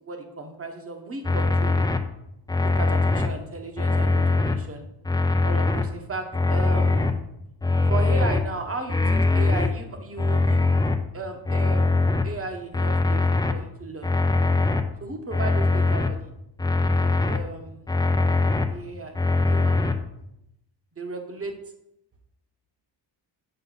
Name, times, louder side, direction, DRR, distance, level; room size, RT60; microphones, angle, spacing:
voice 1, 0.0-1.9 2.8-4.9 5.4-7.2 7.9-10.6 11.1-11.9 12.2-14.1 15.0-16.3 17.0-17.9 18.7-19.2 19.4-20.0 21.0-21.5, right 3 dB, 30° right, 5 dB, 1.2 m, -35 dB
sound 1, 1.2-2.0 2.5-3.3 3.8-4.5 5.0-5.8 6.3-7.1 7.6-8.4 8.9-9.7 10.2-11.0 11.5-12.2 12.7-13.5 14.0-14.8 15.3-16.1 16.6-17.4 17.9-18.6 19.1-19.9, left 3 dB, 10° left, 0.4 m, -21 dB
6.7 x 5.3 x 3.9 m, 0.83 s
cardioid pair, 105°, 45 cm